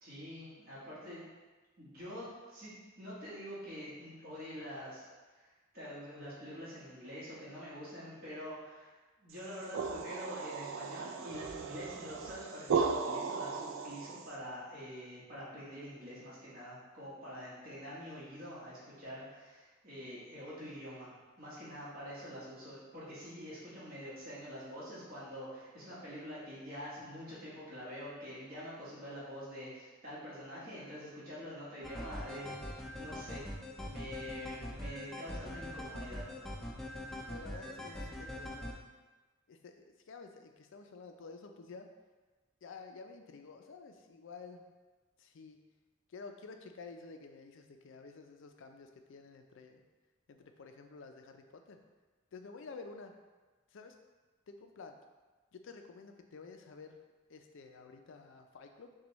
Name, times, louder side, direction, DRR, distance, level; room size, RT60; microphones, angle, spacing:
voice 1, 0.0-1.3 1.8-5.0 5.3-32.5 33.0-33.4 33.8-36.2, equal, 45° right, -10 dB, 1.4 m, -46 dB
sound 1, 9.4-14.3, right 5 dB, 70° right, 0.3 m, -36 dB
sound 2, 31.8-38.7, left 1 dB, ahead, 0.4 m, -43 dB
voice 2, 37.3-38.7 39.5-41.9 42.6-44.7 45.2-45.6 46.1-49.8 50.3-51.8 52.3-53.1 53.7-54.0 54.5-55.0 55.5-57.0 57.3-58.9, left 4 dB, 65° left, 5 dB, 0.4 m, -51 dB
6.0 x 2.3 x 3.0 m, 1.3 s
head